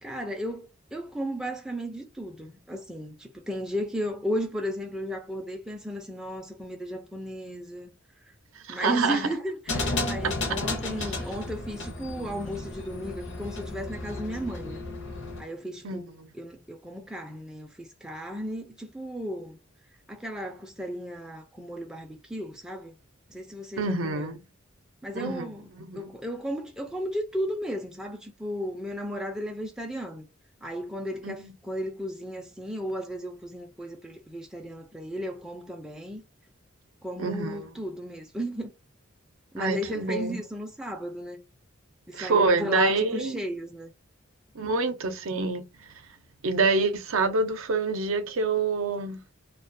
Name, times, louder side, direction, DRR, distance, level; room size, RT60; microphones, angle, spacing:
voice 1, 0.0-7.9 8.7-14.8 15.4-16.1 16.3-19.6 20.1-22.9 23.3-24.3 25.0-25.6 26.0-30.3 30.6-36.2 37.0-38.7 39.5-41.4 42.1-43.9, equal, 5° right, 0.4 m, -34 dB
voice 2, 8.6-9.3 15.8-16.0 23.8-24.4 25.1-25.5 25.8-26.1 31.2-31.3 37.2-37.7 39.6-40.4 42.1-43.4 44.5-45.6 46.4-49.2, right 3 dB, 75° right, 0.5 m, -26 dB
sound 1, 9.7-15.4, left 2 dB, 60° left, 0.6 m, -33 dB
2.2 x 2.2 x 2.5 m
head